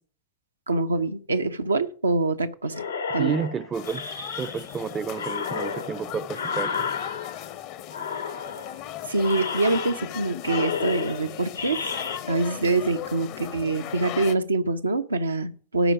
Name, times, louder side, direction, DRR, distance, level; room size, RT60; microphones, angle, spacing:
voice 1, 0.7-2.8 3.1-3.4 9.1-11.8 12.3-15.9, right 3 dB, 80° right, 0.7 m, -25 dB
sound 1, 2.7-4.8 5.1-7.5 7.9-8.8 9.2-10.2 10.4-12.2, left 6 dB, 75° left, 1.0 m, -32 dB
voice 2, 3.2-4.0 4.4-6.9, right 6 dB, 20° right, 0.5 m, -31 dB
sound 2, 3.7-14.4, left 12 dB, 45° left, 0.7 m, -38 dB
13.0 x 5.0 x 5.9 m
figure-of-eight pair, 90°, 0 cm